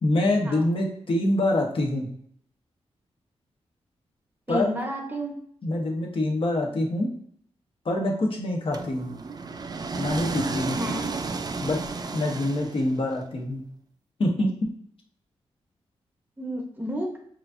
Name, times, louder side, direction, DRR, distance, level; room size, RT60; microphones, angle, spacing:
voice 1, 0.0-2.1 4.5-4.7 5.6-7.1 7.8-9.1 9.9-10.8 11.6-11.8 12.1-13.6 14.2-14.5, left 1 dB, 55° left, 0 dB, 1.1 m, -25 dB
voice 2, 4.5-5.4 10.8-11.1 16.4-17.2, equal, 15° right, 1 dB, 0.9 m, -31 dB
sound 1, 8.7-13.1, right 4 dB, 35° right, 0.4 m, -32 dB
4.8 x 2.8 x 2.6 m, 0.64 s
cardioid pair, 80°, 11 cm